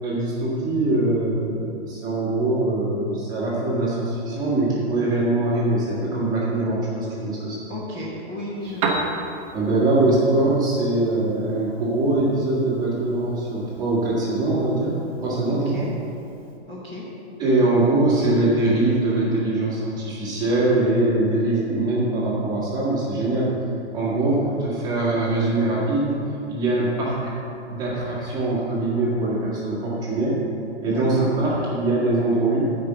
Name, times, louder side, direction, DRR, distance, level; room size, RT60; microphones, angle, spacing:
voice 1, 0.0-7.6 9.5-15.9 17.4-23.5 23.9-26.2 26.5-27.3 27.7-30.4 30.8-32.7, right 2 dB, 10° right, -7 dB, 1.5 m, -22 dB
voice 2, 7.7-9.0 15.5-15.9 16.7-17.0 30.8-31.3, left 1 dB, 15° left, -8 dB, 1.1 m, -34 dB
Piano, 8.6-16.6, right 3 dB, 30° right, 0.9 m, -35 dB
9.6 x 5.2 x 7.3 m, 2.7 s
hypercardioid pair, 175°, 35 cm